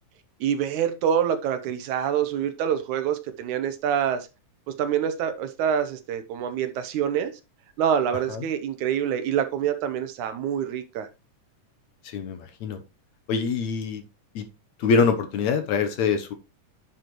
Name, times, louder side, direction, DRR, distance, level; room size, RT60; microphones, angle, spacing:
voice 1, 0.4-4.3 4.7-7.3 7.8-11.1, right 9 dB, 75° right, 2.2 m, -26 dB
voice 2, 12.0-12.8 13.3-14.0 14.4-14.5 14.8-16.3, left 5 dB, 70° left, 2.2 m, -24 dB
10.5 x 5.9 x 3.1 m
omnidirectional pair, 3.7 m